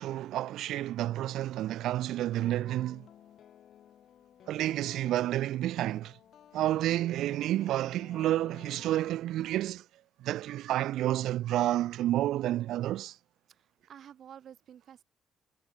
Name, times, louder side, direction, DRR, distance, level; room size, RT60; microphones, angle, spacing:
voice 1, 0.0-3.0 4.5-6.1 6.5-9.8 10.2-13.1, right 13 dB, 85° right, 0.9 m, -30 dB
sound 1, 2.4-9.5, left 10 dB, 60° left, 4.2 m, -56 dB
voice 2, 13.5-15.0, right 9 dB, 55° right, 3.1 m, -51 dB
cardioid pair, 145°, 0 cm